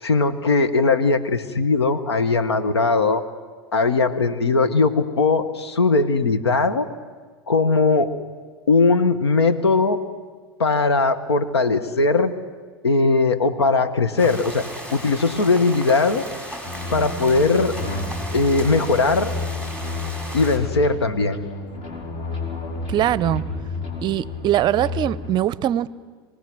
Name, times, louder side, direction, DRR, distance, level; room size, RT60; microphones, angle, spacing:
voice 1, 0.0-3.2 3.7-6.9 7.5-8.1 8.7-10.0 10.6-12.3 12.8-16.2 16.9-17.7 18.3-19.3 20.3-21.4, left 3 dB, 85° left, 10 dB, 1.6 m, -19 dB
sound 1, 14.2-20.6, equal, 10° left, 5.5 m, -35 dB
sound 2, 16.6-25.3, left 3 dB, 40° left, 5.0 m, -31 dB
voice 2, 22.9-23.4 24.0-25.9, right 12 dB, 35° right, 20 dB, 0.6 m, -21 dB
27.0 x 19.0 x 6.3 m, 1.5 s
hypercardioid pair, 100°, 13 cm